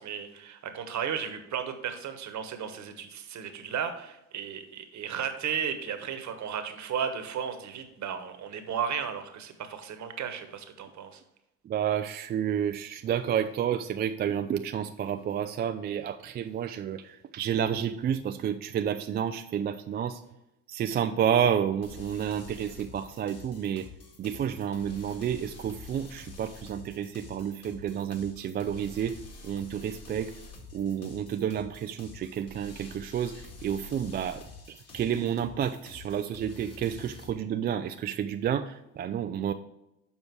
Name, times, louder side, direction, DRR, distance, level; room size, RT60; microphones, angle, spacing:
voice 1, 0.0-11.2, right 7 dB, 45° right, 8 dB, 1.3 m, -34 dB
voice 2, 11.6-20.2 20.7-23.9 24.2-30.4 30.7-39.5, right 9 dB, 25° right, 8 dB, 0.3 m, -30 dB
sound 1, 21.8-37.3, left 3 dB, 35° left, 2.1 m, -48 dB
7.2 x 5.2 x 4.7 m, 0.88 s
hypercardioid pair, 70°, 40 cm